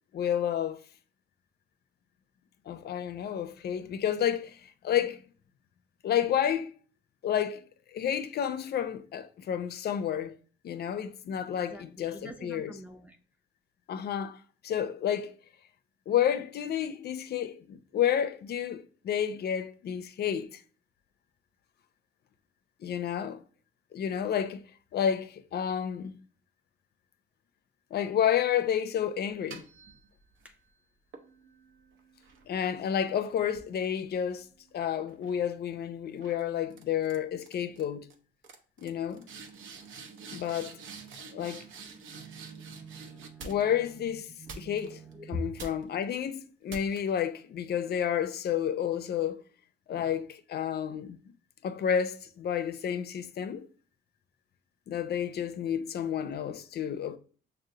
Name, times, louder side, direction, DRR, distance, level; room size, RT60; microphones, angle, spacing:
voice 1, 0.1-0.8 2.7-5.2 6.0-6.7 7.2-7.6 7.9-10.4 10.6-12.8 13.9-14.4 14.6-15.3 16.1-20.6 22.8-23.4 23.9-24.6 24.9-26.2 27.9-29.7 32.5-34.5 34.7-38.1 38.8-39.3 40.3-40.8 41.3-41.6 43.4-44.3 44.6-45.0 45.3-49.4 49.9-51.2 51.6-53.7 54.9-57.2, left 9 dB, 55° left, 0.5 m, -30 dB
voice 2, 11.6-13.2 30.4-30.6 41.6-45.5, equal, 5° right, 0.5 m, -44 dB
sound 1, 29.3-30.5 31.1-34.7 35.1-35.5 36.2-36.4 36.7-37.2 37.4-37.8 38.1-38.2 38.4-43.9 44.5-45.1 45.6-46.0 46.7-47.2, right 4 dB, 75° right, 0.7 m, -48 dB
6.3 x 2.1 x 2.7 m
cardioid pair, 90°, 20 cm